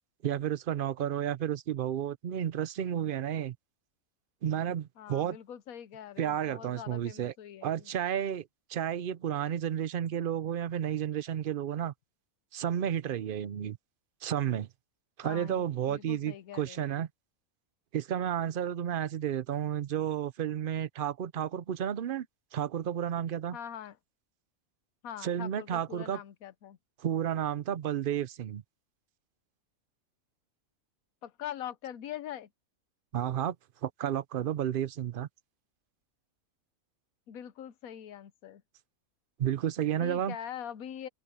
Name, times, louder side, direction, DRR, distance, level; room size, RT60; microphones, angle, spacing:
voice 1, 0.2-3.6 4.4-5.4 6.2-7.3 7.6-11.9 12.5-13.8 14.2-14.7 15.2-17.1 17.9-22.3 22.5-23.6 25.2-26.2 27.0-28.6 33.1-33.6 33.8-35.3 39.4-40.3, right 10 dB, 55° right, 0.6 m, -32 dB
voice 2, 5.0-7.9 15.2-16.9 23.5-24.0 25.0-26.8 31.2-32.5 37.3-38.6 40.0-41.1, left 10 dB, 85° left, 1.2 m, -43 dB
open air
omnidirectional pair, 1.4 m